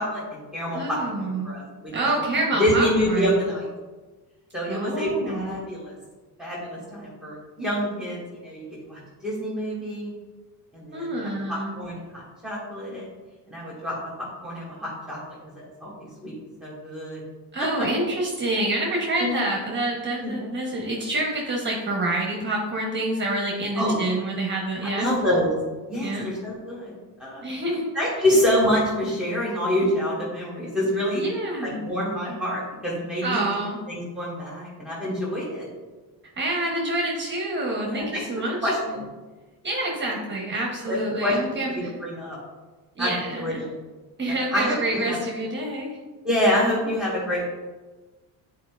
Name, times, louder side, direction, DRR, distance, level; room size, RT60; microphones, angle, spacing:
voice 1, 0.0-2.1 2.6-3.7 4.5-5.9 6.4-10.1 10.7-13.0 13.5-13.9 14.4-15.2 15.5-16.3 16.6-17.2 19.2-19.5 20.2-20.9 23.8-24.1 24.9-25.5 25.9-26.9 27.2-27.4 27.9-31.2 31.6-33.6 33.9-35.7 37.8-38.2 38.6-39.0 40.9-41.4 41.7-42.4 43.0-43.6 44.2-45.2 46.2-47.5, equal, ahead, -7 dB, 1.7 m, -27 dB
voice 2, 0.7-1.5 1.9-3.4 4.7-5.5 10.9-11.7 17.5-25.1 26.0-26.3 27.4-27.9 31.1-31.8 33.2-33.8 36.4-39.0 39.6-41.9 43.0-43.6 44.2-46.0, right 2 dB, 25° right, -1 dB, 1.0 m, -27 dB
8.7 x 4.6 x 2.5 m, 1.3 s
cardioid pair, 130°, 41 cm